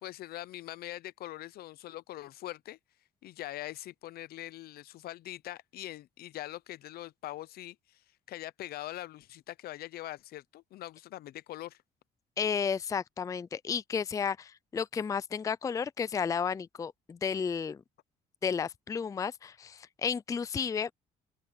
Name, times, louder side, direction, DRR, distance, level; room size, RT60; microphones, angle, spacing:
voice 1, 0.0-2.8 3.2-11.8, left 15 dB, 65° left, 0.6 m, -43 dB
voice 2, 12.4-17.8 18.4-20.9, left 6 dB, 20° left, 0.4 m, -32 dB
open air
cardioid pair, 110°, 17 cm